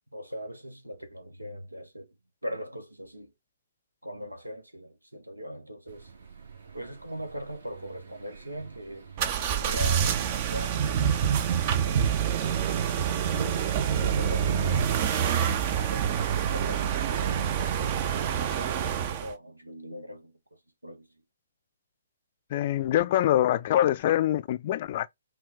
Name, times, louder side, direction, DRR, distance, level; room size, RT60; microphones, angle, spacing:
voice 1, 0.1-2.1 2.4-3.3 4.0-6.1 6.7-9.1 9.5-12.3 13.2-13.7 13.9-18.1 18.6-20.3 20.8-21.1, equal, 90° right, 1.1 m, -40 dB
sound 1, 5.9-14.4, right 6 dB, 65° right, 1.7 m, -46 dB
sound 2, 9.2-19.3, right 8 dB, 35° right, 0.7 m, -26 dB
voice 2, 22.5-25.1, left 12 dB, 40° left, 0.4 m, -24 dB
5.6 x 2.4 x 3.5 m
figure-of-eight pair, 125°, 0 cm